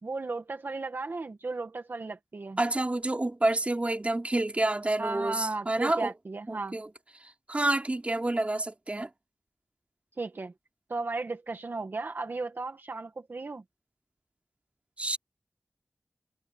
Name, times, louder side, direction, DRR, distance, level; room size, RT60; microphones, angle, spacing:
voice 1, 0.0-2.6 5.0-6.8 10.2-10.5 10.9-13.6, right 3 dB, 60° right, 1.9 m, -35 dB
voice 2, 2.6-6.1 6.5-6.9 7.2-9.1 15.0-15.2, right 2 dB, 35° right, 3.3 m, -28 dB
wide cardioid pair, 55°, 4 cm